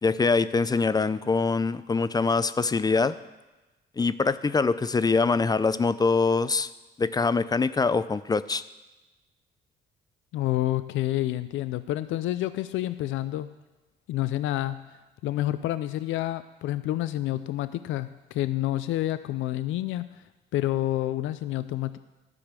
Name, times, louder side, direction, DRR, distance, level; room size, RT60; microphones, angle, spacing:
voice 1, 0.0-3.2 4.0-6.7 7.0-8.6, left 4 dB, 20° left, 15 dB, 0.4 m, -24 dB
voice 2, 10.3-13.5 14.1-14.9 15.2-20.1 20.5-22.0, left 14 dB, 80° left, 13 dB, 0.4 m, -28 dB
12.0 x 5.1 x 7.3 m, 1.1 s
cardioid pair, 90°, 20 cm